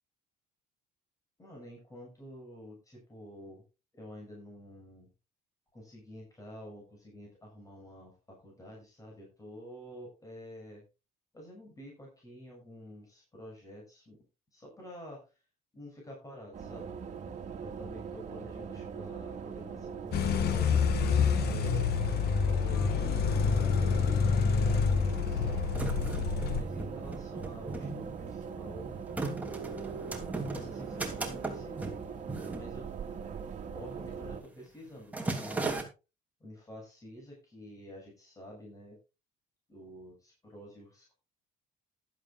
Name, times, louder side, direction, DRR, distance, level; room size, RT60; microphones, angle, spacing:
voice 1, 1.4-3.6 3.9-5.1 5.7-10.8 11.3-14.2 14.5-15.3 15.7-17.0 17.6-20.9 21.4-22.0 22.4-25.7 26.5-28.9 30.5-32.1 32.5-32.9 33.7-35.9 36.4-39.0 39.7-41.1, equal, 20° left, -1 dB, 6.8 m, -49 dB
sound 1, 16.5-34.4, right 6 dB, 45° right, 2.4 m, -41 dB
sound 2, 20.1-26.6, left 6 dB, 70° left, 1.7 m, -27 dB
sound 3, 23.3-23.4 23.6-24.4 25.1-33.4 33.6-33.9 34.2-34.6 34.8-35.8, right 3 dB, 10° right, 2.9 m, -38 dB
15.0 x 12.0 x 2.5 m, 0.28 s
cardioid pair, 110°, 17 cm